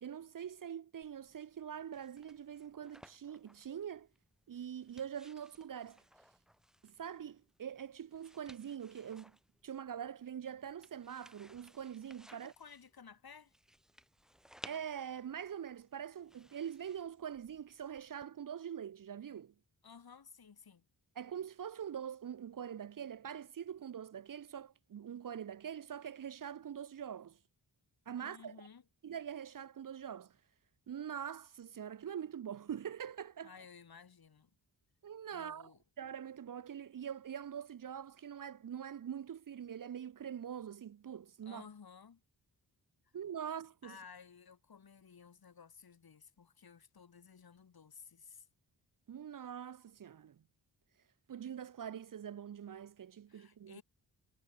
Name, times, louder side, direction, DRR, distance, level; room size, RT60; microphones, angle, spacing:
voice 1, 0.0-4.1 4.5-6.0 6.8-9.3 9.6-12.5 14.6-19.5 21.2-27.4 28.1-28.7 29.0-30.4 30.9-33.5 35.0-35.7 36.0-41.6 43.1-44.0 49.1-50.4 51.3-53.8, right 8 dB, 50° right, 0.7 m, -44 dB
sound 1, 1.0-18.3, equal, ahead, 1.0 m, -61 dB
voice 2, 12.3-13.5 19.8-20.8 28.2-28.8 33.4-34.5 35.3-35.8 41.4-42.2 43.8-48.5 53.3-53.8, left 6 dB, 60° left, 6.2 m, -56 dB
wide cardioid pair, 120°, 41 cm